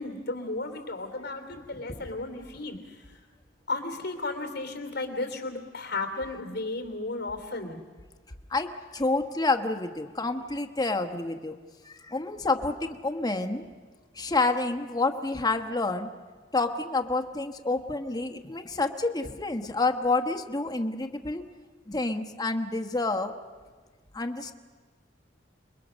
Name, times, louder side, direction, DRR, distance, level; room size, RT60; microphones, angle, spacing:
voice 1, 0.0-3.0 3.7-7.8, left 2 dB, 60° left, 6 dB, 2.9 m, -34 dB
voice 2, 8.5-11.6 11.8-13.7 14.1-16.1 16.5-21.4 21.9-23.3 24.1-24.5, left 3 dB, 20° left, 5 dB, 1.2 m, -28 dB
29.0 x 20.5 x 6.3 m, 1.4 s
head